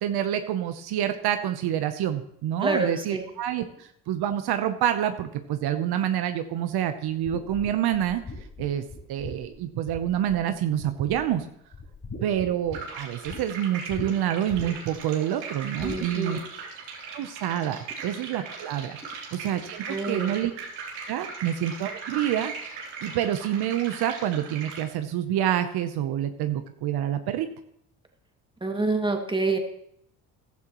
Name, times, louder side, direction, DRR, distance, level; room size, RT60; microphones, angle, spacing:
voice 1, 0.0-8.2 8.6-8.8 9.1-11.5 12.2-16.4 17.1-19.0 19.3-20.5 21.1-22.8 23.0-27.5, right 11 dB, 70° right, 8 dB, 0.9 m, -27 dB
voice 2, 2.6-3.2 15.8-16.4 19.9-20.3 28.6-29.6, right 3 dB, 10° right, 3 dB, 2.2 m, -27 dB
sound 1, 7.3-10.5 10.8-11.4 11.7-13.4 13.9-14.1 14.5-15.0 15.8-16.1, left 3 dB, 35° left, 6.1 m, -40 dB
sound 2, 12.7-24.8, right 5 dB, 85° right, 3.5 m, -39 dB
14.5 x 12.0 x 3.1 m, 0.72 s
supercardioid pair, 75°, 40 cm